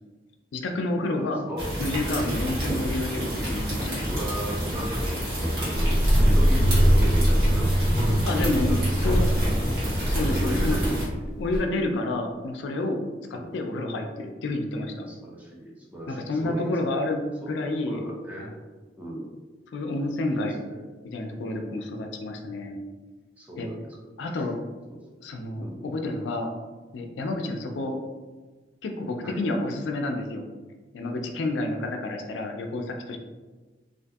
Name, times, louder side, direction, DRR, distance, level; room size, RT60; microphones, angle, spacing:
voice 1, 0.5-1.4 1.8-4.1 8.3-9.3 10.1-10.9 11.4-13.0 13.3-15.1 16.1-18.0 18.4-18.5 19.7-20.6 21.0-22.8 23.6-23.7 24.2-24.6 25.2-26.5 26.9-28.0 28.8-30.5 30.9-33.2, left 2 dB, 80° left, 3 dB, 0.3 m, -29 dB
voice 2, 1.2-1.7 4.0-5.2 5.6-9.5 10.4-11.4 13.3-13.5 15.1-16.8 17.4-18.5 19.0-19.3 20.3-20.8 23.4-24.5 24.9-25.0 25.6-25.9 29.2-29.4, right 1 dB, 10° right, -4 dB, 0.4 m, -37 dB
sound 1, 1.6-11.1, equal, 65° right, 1.0 m, -29 dB
sound 2, 5.7-11.6, equal, 20° left, 0.8 m, -22 dB
2.6 x 2.5 x 2.3 m, 1.3 s
head